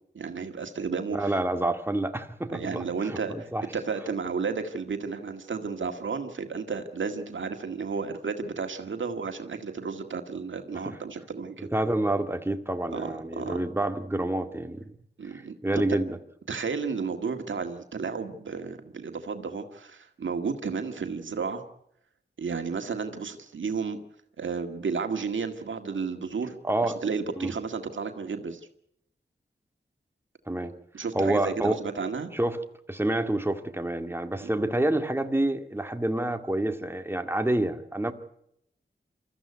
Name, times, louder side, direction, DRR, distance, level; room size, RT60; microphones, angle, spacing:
voice 1, 0.1-1.3 2.5-11.7 12.9-13.6 15.2-15.5 16.5-21.6 22.4-24.0 24.4-28.7 30.9-32.3 34.4-34.5, right 5 dB, 90° right, 6 dB, 1.8 m, -32 dB
voice 2, 1.1-3.7 10.9-11.0 11.6-14.8 15.6-16.2 26.6-27.0 27.4-27.5 30.5-30.7 31.1-31.8 32.3-32.6 32.9-38.1, right 1 dB, 10° right, 6 dB, 2.0 m, -28 dB
24.5 x 14.5 x 9.5 m, 0.75 s
wide cardioid pair, 60°, 19 cm